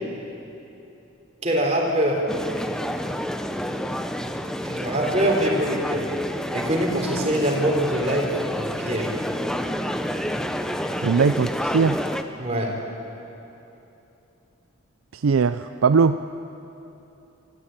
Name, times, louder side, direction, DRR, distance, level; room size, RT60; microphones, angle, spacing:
voice 1, 1.4-2.3 4.6-6.1 6.5-9.2 12.4-12.8, right 1 dB, 30° right, 0 dB, 3.5 m, -24 dB
sound 1, 2.3-12.2, equal, 5° left, 0.7 m, -29 dB
voice 2, 11.0-12.1 15.1-16.2, right 5 dB, 80° right, 11 dB, 0.5 m, -20 dB
24.5 x 14.5 x 8.9 m, 3.0 s
head